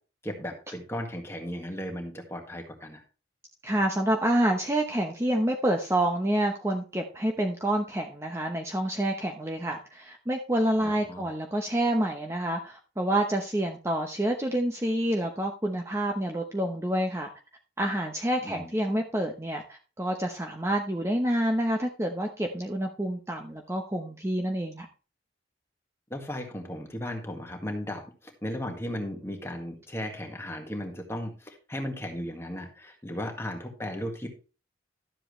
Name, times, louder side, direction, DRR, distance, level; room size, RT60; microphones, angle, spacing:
voice 1, 0.2-3.0 10.8-11.2 18.4-18.7 26.1-34.3, left 1 dB, 15° left, 3 dB, 1.8 m, -36 dB
voice 2, 3.6-17.3 17.8-24.9, right 1 dB, 15° right, 2 dB, 0.8 m, -28 dB
12.5 x 7.6 x 3.2 m, 0.34 s
head